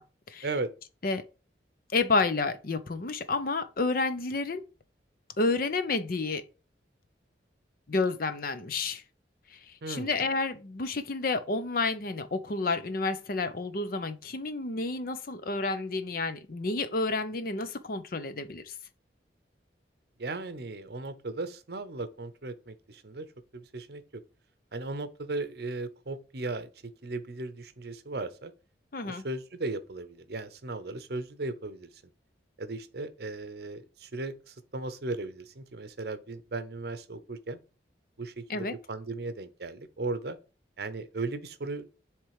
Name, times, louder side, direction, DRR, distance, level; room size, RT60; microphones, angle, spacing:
voice 1, 1.9-4.6 5.4-6.5 7.9-9.0 9.5-18.7 28.9-29.2 38.5-38.7, left 3 dB, 50° left, 0.6 m, -30 dB
voice 2, 9.8-10.3 20.2-23.3 23.5-24.2 24.7-28.5 29.0-31.9 32.6-37.6 38.2-40.4 40.8-42.0, right 3 dB, 60° right, 0.7 m, -37 dB
7.5 x 3.3 x 4.8 m
head